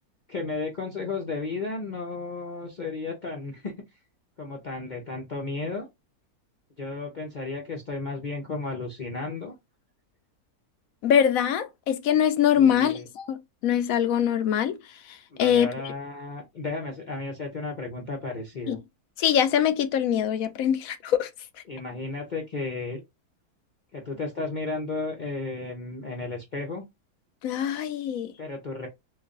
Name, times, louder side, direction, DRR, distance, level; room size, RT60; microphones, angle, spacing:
voice 1, 0.3-3.7 4.4-5.9 6.8-9.5 12.6-13.1 15.3-18.8 21.7-23.0 23.9-26.8 28.4-28.9, left 3 dB, 45° left, 0.6 m, -33 dB
voice 2, 11.0-14.8 15.1-15.7 18.7-18.8 19.2-21.3 27.4-28.3, left 9 dB, 70° left, 1.0 m, -23 dB
3.1 x 2.4 x 3.7 m
omnidirectional pair, 1.7 m